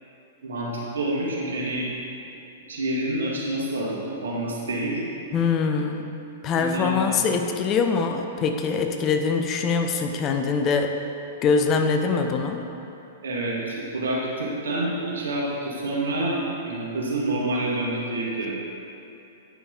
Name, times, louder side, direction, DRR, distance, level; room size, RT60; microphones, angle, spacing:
voice 1, 0.4-1.9 2.7-5.1 6.5-7.2 13.2-18.5, right 1 dB, 75° right, -4 dB, 1.8 m, -28 dB
voice 2, 5.3-6.1 6.4-11.0 11.4-12.7, left 5 dB, 30° left, 5 dB, 0.6 m, -23 dB
9.4 x 5.9 x 3.9 m, 2.9 s
figure-of-eight pair, 105°, 0 cm